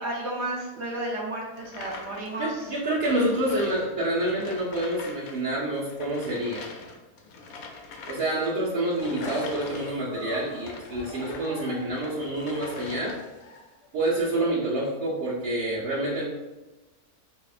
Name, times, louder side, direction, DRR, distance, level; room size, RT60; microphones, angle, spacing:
voice 1, 0.0-2.7, right 1 dB, 50° right, -4 dB, 1.0 m, -32 dB
sound 1, 1.6-5.4 5.6-11.5 11.9-13.4, left 4 dB, 70° left, 1.0 m, -44 dB
voice 2, 2.4-6.6 8.1-13.2 13.9-16.2, right 1 dB, 75° right, -9 dB, 1.3 m, -27 dB
sound 2, 9.0-13.9, left 3 dB, 85° left, 0.5 m, -42 dB
5.7 x 2.1 x 2.3 m, 1.1 s
omnidirectional pair, 1.6 m